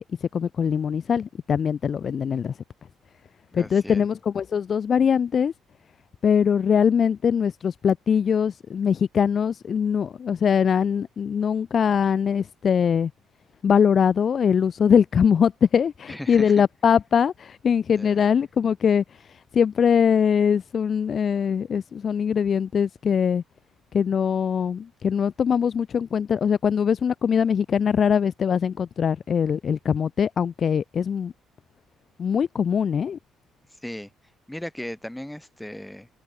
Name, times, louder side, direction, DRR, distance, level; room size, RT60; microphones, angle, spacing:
voice 1, 0.0-2.5 3.5-5.5 6.2-13.1 13.6-23.4 23.9-31.3 32.2-33.2, left 7 dB, 50° left, 0.4 m, -22 dB
voice 2, 3.5-4.0 16.1-16.6 18.0-18.2 33.8-34.1 34.5-36.1, left 1 dB, 5° left, 2.6 m, -36 dB
cardioid pair, 85°, 0 cm